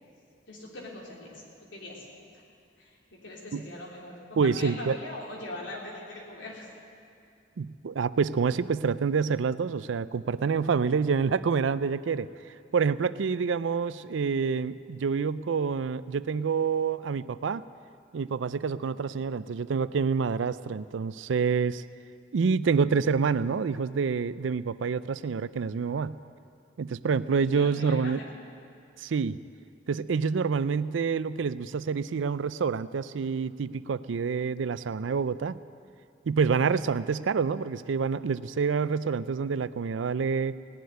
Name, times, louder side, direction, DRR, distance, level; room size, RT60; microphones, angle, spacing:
voice 1, 0.5-1.4 1.7-2.0 2.8-6.7 18.8-19.0 27.5-28.3 36.5-36.8, left 2 dB, 80° left, -3 dB, 3.4 m, -41 dB
voice 2, 4.4-5.0 7.6-12.3 12.7-17.6 18.1-21.8 22.3-26.1 26.8-28.2 29.0-29.4 29.9-35.6 36.3-40.6, right 5 dB, 85° right, 16 dB, 0.4 m, -27 dB
17.5 x 7.9 x 9.5 m, 2.5 s
head